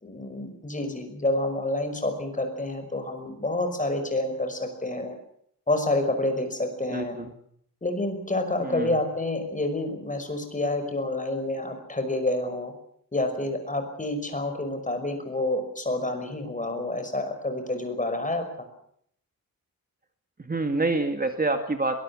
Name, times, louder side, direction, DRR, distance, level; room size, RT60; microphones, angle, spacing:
voice 1, 0.0-5.2 5.7-7.2 7.8-12.7 13.1-18.5, left 2 dB, 20° left, 7 dB, 5.6 m, -28 dB
voice 2, 6.9-7.3 8.6-8.9 20.4-22.0, right 2 dB, 25° right, 6 dB, 2.0 m, -27 dB
22.5 x 21.5 x 7.1 m, 0.67 s
wide cardioid pair, 135°, 35 cm